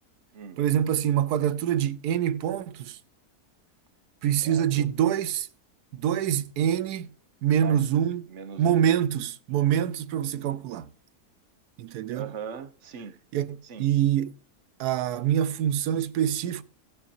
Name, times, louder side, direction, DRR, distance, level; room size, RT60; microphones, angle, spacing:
voice 1, 0.6-3.0 4.2-5.5 5.9-7.1 7.4-8.2 8.6-10.9 11.8-12.3 13.3-13.5 13.8-14.3 14.8-16.6, right 10 dB, 85° right, 1.2 m, -25 dB
voice 2, 4.4-4.9 7.6-7.9 8.3-8.9 12.1-13.2 13.6-13.9, right 7 dB, 55° right, 1.1 m, -40 dB
16.0 x 8.9 x 2.7 m
omnidirectional pair, 1.7 m